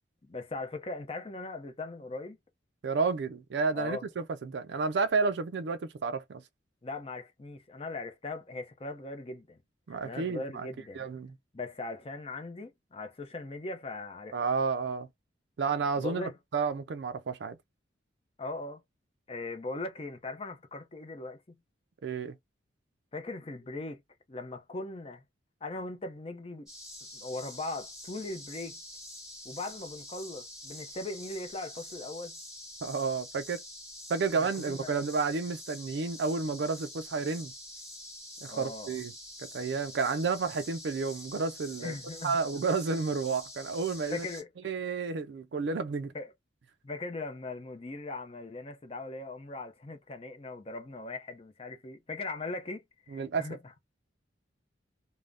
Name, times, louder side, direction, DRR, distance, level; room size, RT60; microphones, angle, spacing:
voice 1, 0.2-2.4 3.7-4.0 6.8-9.6 9.9-11.1 11.5-14.4 16.0-16.4 18.4-18.8 19.3-21.6 23.1-24.0 24.3-25.2 25.6-26.7 27.1-28.8 29.4-32.4 34.4-35.0 38.5-39.0 41.8-42.4 44.1-44.5 46.1-46.3 46.8-53.6, left 2 dB, 30° left, 0.5 m, -39 dB
voice 2, 2.8-6.4 9.9-10.7 11.0-11.3 14.3-15.1 15.6-17.6 22.0-22.3 32.8-33.6 34.1-37.5 38.4-39.1 39.5-41.9 42.2-44.3 44.6-46.1 53.1-53.5, right 4 dB, 65° right, 0.4 m, -31 dB
sound 1, 26.7-44.4, left 1 dB, ahead, 1.2 m, -46 dB
2.5 x 2.1 x 3.3 m
head